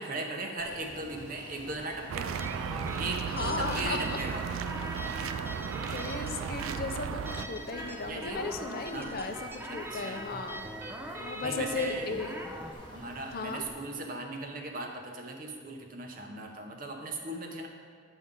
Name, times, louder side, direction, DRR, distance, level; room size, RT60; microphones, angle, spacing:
voice 1, 0.0-2.4 3.0-4.5 8.1-8.5 8.8-9.2 9.7-10.3 11.4-12.1 12.9-17.7, right 2 dB, 45° right, 2 dB, 0.7 m, -38 dB
sound 1, 0.6-13.7, left 1 dB, 25° left, 1.2 m, -49 dB
sound 2, 2.1-7.5, right 7 dB, 85° right, 0.3 m, -35 dB
sound 3, 2.4-12.7, right 1 dB, 10° right, 0.4 m, -42 dB
voice 2, 3.3-4.2 5.2-5.6 5.9-10.7 11.2-12.3 13.3-13.6, left 4 dB, 45° left, 6 dB, 0.5 m, -36 dB
9.2 x 5.3 x 3.7 m, 2.1 s
head